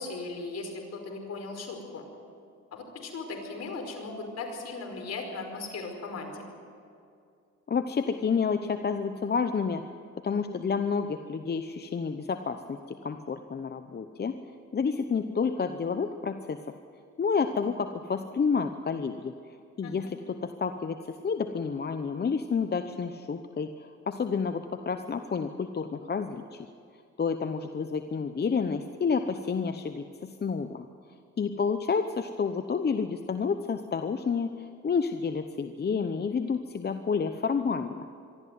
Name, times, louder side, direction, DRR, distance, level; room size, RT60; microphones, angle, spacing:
voice 1, 0.0-2.1 2.7-6.4 19.8-19.9, left 3 dB, 55° left, 2 dB, 5.0 m, -37 dB
voice 2, 7.7-9.8 10.2-14.4 14.7-16.6 17.2-19.3 19.8-21.0 21.2-26.7 27.2-30.8 31.4-38.1, left 5 dB, 35° left, 8 dB, 0.9 m, -29 dB
23.5 x 13.5 x 9.5 m, 2.4 s
cardioid pair, 90°, 30 cm